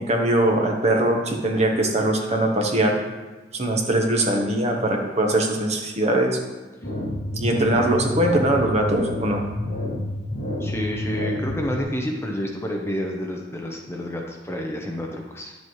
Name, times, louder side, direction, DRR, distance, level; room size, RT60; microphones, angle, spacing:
voice 1, 0.0-3.0 3.5-6.4 7.3-9.4, right 1 dB, 35° right, 1 dB, 1.0 m, -21 dB
sound 1, 6.8-11.8, left 1 dB, 45° left, 2.1 m, -29 dB
voice 2, 10.6-15.6, equal, 15° left, 1 dB, 0.6 m, -29 dB
10.5 x 7.2 x 3.1 m, 1.2 s
head